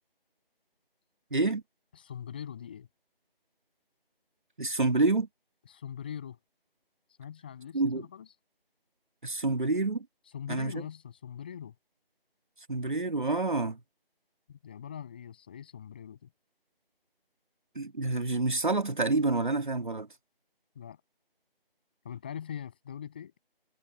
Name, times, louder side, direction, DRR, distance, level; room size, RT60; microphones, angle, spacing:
voice 1, 1.3-1.6 4.6-5.3 7.7-8.1 9.2-10.1 10.5-10.7 12.7-13.8 17.8-20.1, right 3 dB, 55° right, 2.2 m, -28 dB
voice 2, 1.9-2.9 5.7-6.4 7.2-8.3 10.3-11.7 14.5-16.3 20.7-21.0 22.0-23.4, left 8 dB, 10° left, 7.5 m, -42 dB
figure-of-eight pair, 180°, 30 cm